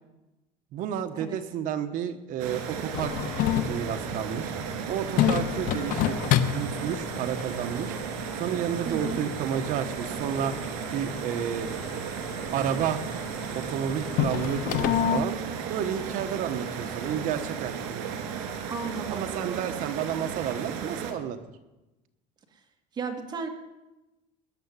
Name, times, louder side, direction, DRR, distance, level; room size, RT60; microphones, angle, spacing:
voice 1, 0.7-3.1 3.6-4.5 4.9-8.0 8.3-10.6 10.9-11.7 12.5-13.0 13.5-15.4 15.7-18.3 19.1-21.4, right 9 dB, 50° right, 9 dB, 1.1 m, -31 dB
sound 1, 2.4-21.1, right 7 dB, 90° right, 2.6 m, -35 dB
sound 2, 2.9-15.2, left 10 dB, 55° left, 1.0 m, -30 dB
voice 2, 8.9-9.2 18.7-19.6 22.9-23.5, right 4 dB, 25° right, 4 dB, 1.8 m, -34 dB
20.0 x 7.1 x 9.8 m, 1.0 s
cardioid pair, 165°, 17 cm